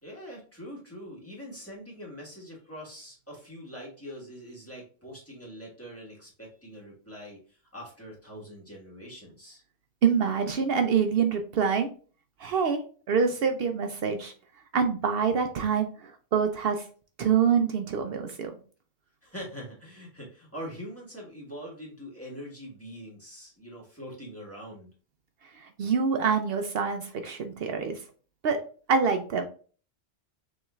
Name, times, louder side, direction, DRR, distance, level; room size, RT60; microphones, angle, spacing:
voice 1, 0.0-9.6 19.2-24.9, equal, 15° left, -4 dB, 1.6 m, -43 dB
voice 2, 10.0-11.9 12.4-12.8 13.1-14.3 14.7-16.8 17.2-18.5 25.6-28.0 28.4-28.6 28.9-29.4, right 6 dB, 70° right, 6 dB, 0.8 m, -26 dB
6.7 x 3.1 x 2.3 m, 0.40 s
omnidirectional pair, 1.1 m